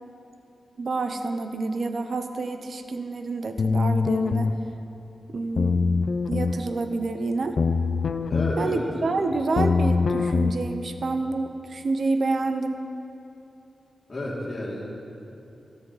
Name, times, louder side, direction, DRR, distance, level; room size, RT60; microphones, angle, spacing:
voice 1, 0.8-4.5 5.3-5.8 6.3-7.6 8.6-12.9, right 3 dB, 60° right, 7 dB, 0.8 m, -28 dB
sound 1, 3.6-4.6 5.6-6.6 7.6-8.6 9.6-10.5, left 4 dB, 60° left, 0.5 m, -23 dB
voice 2, 8.3-8.8 14.1-14.8, left 1 dB, 35° left, -5 dB, 2.7 m, -30 dB
13.5 x 13.0 x 4.1 m, 2.8 s
wide cardioid pair, 110°, 0 cm